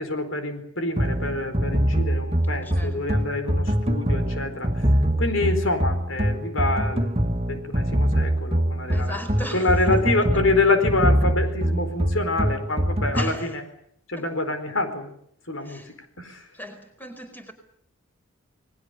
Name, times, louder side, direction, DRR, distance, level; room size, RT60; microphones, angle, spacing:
voice 1, 0.0-4.7 5.2-9.2 9.5-13.6 14.1-15.1 15.5-15.8 16.2-16.5, left 2 dB, 70° left, 4.4 m, -26 dB
sound 1, 1.0-13.4, equal, 30° right, 2.2 m, -24 dB
voice 2, 2.6-3.2 8.9-10.4 13.1-13.6 14.2-14.3 15.6-15.9 16.5-17.5, equal, 10° left, 4.8 m, -38 dB
28.5 x 21.0 x 6.9 m
head